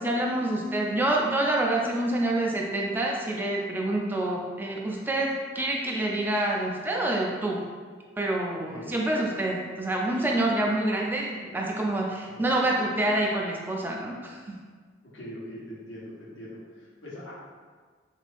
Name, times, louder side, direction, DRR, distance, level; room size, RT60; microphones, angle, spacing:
voice 1, 0.0-7.6 8.2-14.4, right 1 dB, 10° right, -2 dB, 0.4 m, -27 dB
voice 2, 15.1-17.3, equal, 75° left, -6 dB, 1.0 m, -42 dB
3.3 x 2.5 x 3.4 m, 1.5 s
head